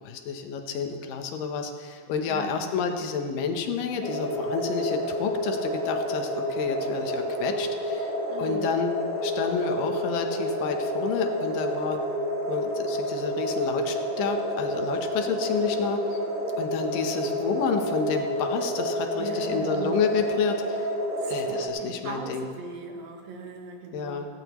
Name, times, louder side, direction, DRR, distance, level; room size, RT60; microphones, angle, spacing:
voice 1, 0.0-8.1 8.4-8.9 9.2-12.0 12.5-16.2 16.6-20.9 21.3-22.5 23.9-24.3, left 6 dB, 80° left, 5 dB, 2.6 m, -30 dB
voice 2, 2.3-2.6 8.3-8.7 19.2-19.9 21.2-24.3, right 3 dB, 90° right, 2 dB, 3.1 m, -39 dB
sound 1, 4.0-21.7, equal, 50° right, 2.2 m, -29 dB
17.0 x 16.5 x 3.0 m, 2.2 s
omnidirectional pair, 3.9 m